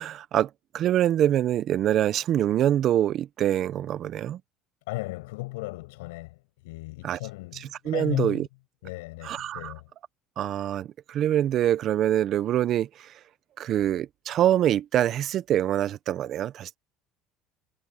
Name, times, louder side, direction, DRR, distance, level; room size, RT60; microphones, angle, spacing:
voice 1, 0.0-4.4 7.0-7.2 7.8-8.5 9.2-9.7 10.4-13.1 13.6-16.8, right 11 dB, 55° right, 1.1 m, -25 dB
voice 2, 4.9-8.5 8.8-9.9, left 22 dB, 90° left, 6.8 m, -35 dB
supercardioid pair, 85°, 0 cm